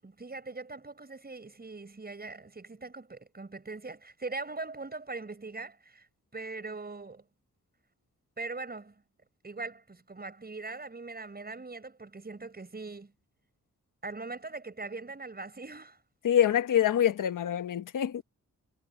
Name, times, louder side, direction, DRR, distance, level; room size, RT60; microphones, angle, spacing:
voice 1, 0.0-6.1 6.3-7.2 8.4-9.0 9.4-13.1 14.0-16.0, right 3 dB, 30° right, 6.9 m, -41 dB
voice 2, 16.2-18.2, left 10 dB, 90° left, 1.2 m, -25 dB
cardioid pair, 85°, 31 cm